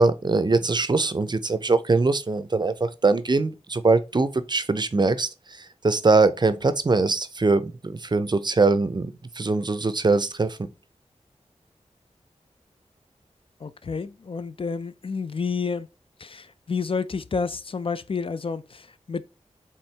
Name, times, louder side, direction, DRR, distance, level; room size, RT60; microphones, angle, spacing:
voice 1, 0.0-5.3 5.8-7.7 8.0-9.1 9.4-10.6, right 3 dB, 35° right, 0.5 m, -22 dB
voice 2, 13.6-15.9 16.2-19.2, left 5 dB, 45° left, 0.4 m, -30 dB
4.4 x 3.5 x 3.2 m
wide cardioid pair, 55°, 13 cm